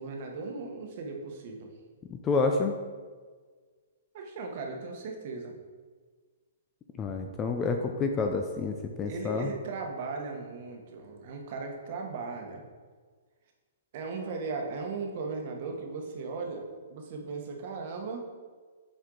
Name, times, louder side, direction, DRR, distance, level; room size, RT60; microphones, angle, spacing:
voice 1, 0.0-1.7 4.1-5.6 9.0-12.6 13.9-18.2, right 4 dB, 40° right, 2 dB, 1.0 m, -37 dB
voice 2, 2.1-2.7 7.0-9.5, left 4 dB, 15° left, 4 dB, 0.3 m, -29 dB
7.6 x 4.4 x 3.8 m, 1.5 s
hypercardioid pair, 170°, 0 cm